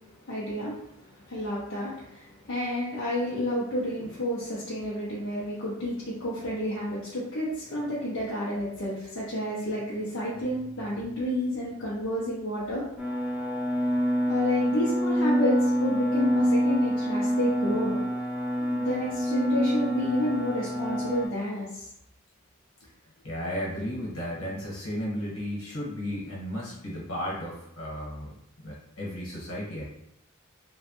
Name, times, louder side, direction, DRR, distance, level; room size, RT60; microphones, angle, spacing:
voice 1, 0.0-12.8 14.3-18.0 18.6-21.9, left 1 dB, 65° left, -7 dB, 0.6 m, -30 dB
sound 1, 13.0-21.3, equal, 5° right, 0.6 m, -26 dB
voice 2, 23.2-29.9, equal, 85° left, -5 dB, 1.3 m, -34 dB
3.0 x 2.2 x 2.9 m, 0.78 s
head